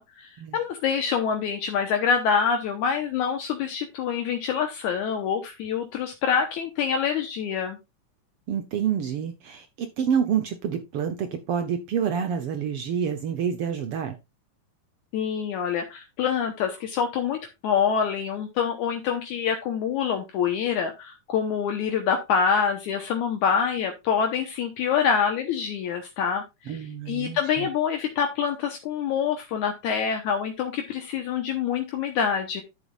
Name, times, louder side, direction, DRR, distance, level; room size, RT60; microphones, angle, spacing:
voice 1, 0.0-7.8 15.1-32.6, left 7 dB, 75° left, 2.3 m, -26 dB
voice 2, 8.5-14.1 26.7-27.7, right 7 dB, 80° right, 1.3 m, -28 dB
11.5 x 7.2 x 2.4 m
omnidirectional pair, 3.7 m